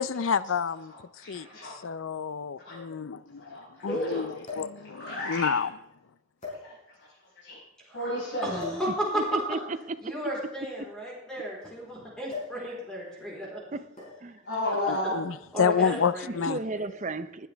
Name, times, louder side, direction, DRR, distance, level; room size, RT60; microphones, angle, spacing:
voice 1, 0.0-0.9 1.3-1.5 1.8-5.7 14.9-16.6, left 6 dB, 85° left, 0.5 m, -29 dB
sound 1, 0.7-0.8 1.9-2.0 2.2-2.3 4.4-4.8 5.6-5.8 6.4-7.1 8.6-8.9 10.0-11.7 12.3-12.7 12.9-13.2 14.0-14.3 15.3-15.6, left 4 dB, 35° left, 5.6 m, -41 dB
voice 2, 0.9-1.7 2.6-2.8 3.4-4.2 4.9-5.6 6.5-6.7 7.4-7.6 7.9-8.8 14.4-15.1, left 1 dB, 65° left, 5.6 m, -33 dB
voice 3, 3.9-4.4 7.9-8.1 8.4-9.2 10.0-13.6 15.5-16.9, right 1 dB, 5° left, 4.2 m, -34 dB
voice 4, 9.1-10.2 10.6-10.9 12.6-12.8 13.7-13.9 14.2-14.4 16.3-17.5, right 3 dB, 35° right, 0.6 m, -35 dB
20.0 x 10.0 x 3.5 m
head